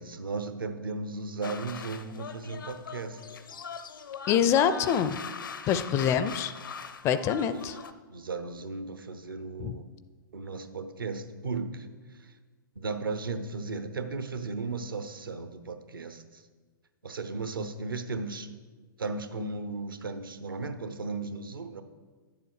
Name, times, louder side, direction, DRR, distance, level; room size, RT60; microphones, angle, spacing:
voice 1, 0.0-3.4 7.7-7.8 8.1-9.8 10.3-11.9 12.2-12.3 12.7-16.4 17.0-18.5 19.0-21.8, right 3 dB, 75° right, 9 dB, 0.9 m, -36 dB
sound 1, 1.4-7.9, left 6 dB, 70° left, 0.6 m, -41 dB
voice 2, 4.3-5.2 5.7-6.5 7.0-7.7 9.6-9.8, left 8 dB, 25° left, 13 dB, 0.4 m, -25 dB
10.5 x 7.2 x 4.8 m, 1.4 s
figure-of-eight pair, 110°, 12 cm